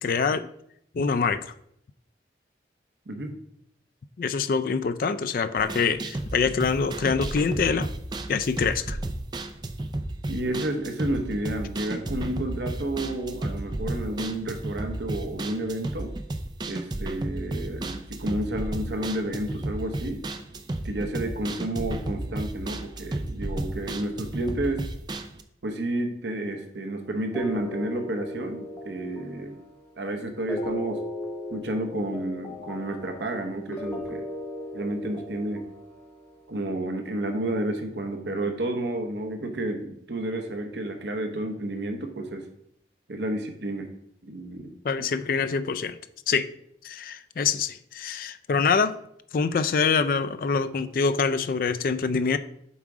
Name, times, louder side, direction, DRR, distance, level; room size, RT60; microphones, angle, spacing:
voice 1, 0.0-0.5 0.9-1.5 4.2-7.9 8.3-9.0 44.8-46.0 46.3-46.5 46.8-48.9 49.3-52.4, left 5 dB, 50° left, 11 dB, 0.3 m, -25 dB
sound 1, 5.6-25.4, right 2 dB, 25° right, 0.4 m, -33 dB
voice 2, 10.3-16.1 16.7-20.2 20.8-24.9 25.6-29.6 30.0-31.0 31.5-34.3 34.7-35.7 36.5-42.5 43.1-43.9 44.2-44.7, right 1 dB, 80° right, 5 dB, 0.8 m, -31 dB
sound 2, 27.3-36.5, left 1 dB, 15° left, 0.8 m, -37 dB
7.2 x 3.6 x 4.8 m, 0.74 s
head